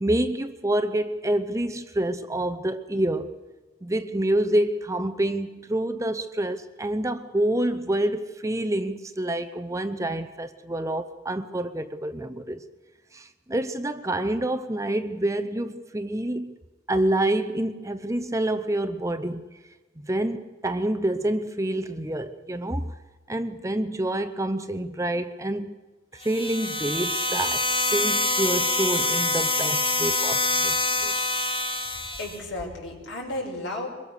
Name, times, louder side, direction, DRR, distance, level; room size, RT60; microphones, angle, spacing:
voice 1, 0.0-3.3 3.8-12.6 13.1-16.6 16.9-19.5 20.0-22.9 23.3-25.8 26.1-30.8 31.0-31.2, right 1 dB, 15° right, 0.7 m, -27 dB
sound 1, 26.2-32.4, left 2 dB, 30° left, 2.4 m, -25 dB
voice 2, 31.8-33.9, left 2 dB, 70° left, 5.9 m, -34 dB
24.0 x 21.5 x 6.6 m
head